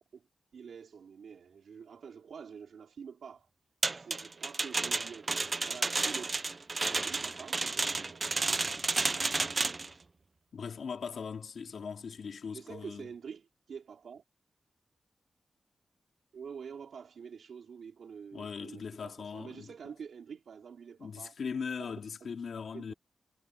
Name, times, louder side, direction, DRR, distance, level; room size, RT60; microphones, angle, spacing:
voice 1, 0.5-3.5 3.9-6.4 7.0-8.3 9.2-9.6 12.5-14.2 16.3-21.3 21.8-21.9 22.7-22.9, right 6 dB, 80° right, 4.3 m, -47 dB
sound 1, 3.8-9.9, right 3 dB, 35° right, 0.4 m, -31 dB
voice 2, 10.5-13.1 18.3-19.7 21.0-22.9, left 6 dB, 70° left, 3.1 m, -39 dB
wide cardioid pair, 115°, 0 cm